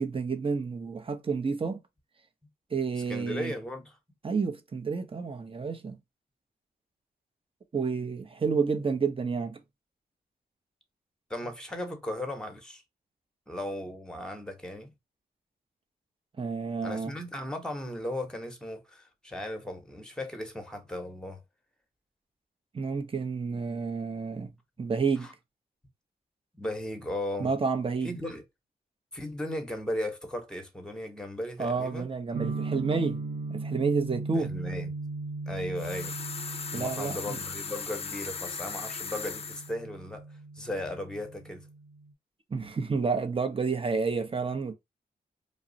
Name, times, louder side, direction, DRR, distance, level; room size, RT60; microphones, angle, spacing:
voice 1, 0.0-1.8 2.7-3.5 4.2-6.0 7.7-9.6 16.4-17.1 22.7-24.5 24.8-25.3 27.4-28.1 31.6-33.2 33.5-34.5 36.7-37.4 42.5-44.7, right 5 dB, 30° right, 0.7 m, -30 dB
voice 2, 3.1-4.0 11.3-12.8 13.5-14.9 16.8-21.4 25.2-25.3 26.5-27.5 28.0-28.4 29.1-32.1 34.3-34.9 35.5-36.2 36.7-40.2 40.6-41.7, left 1 dB, 5° left, 1.0 m, -36 dB
sound 1, 32.3-42.1, right 3 dB, 75° right, 0.6 m, -38 dB
sound 2, 35.8-39.7, left 5 dB, 35° left, 0.4 m, -38 dB
2.3 x 2.0 x 3.8 m
cardioid pair, 50°, 18 cm